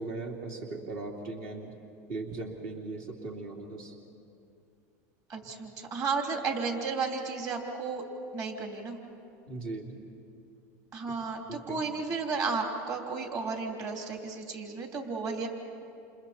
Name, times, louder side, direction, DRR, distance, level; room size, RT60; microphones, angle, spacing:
voice 1, 0.0-1.7 2.1-3.9 9.5-10.0 11.5-11.8, right 3 dB, 65° right, -1 dB, 3.1 m, -38 dB
voice 2, 5.3-8.0 8.3-9.0 10.9-15.5, right 4 dB, 40° right, 2 dB, 3.3 m, -33 dB
29.5 x 28.5 x 4.4 m, 2.5 s
supercardioid pair, 115°, 9 cm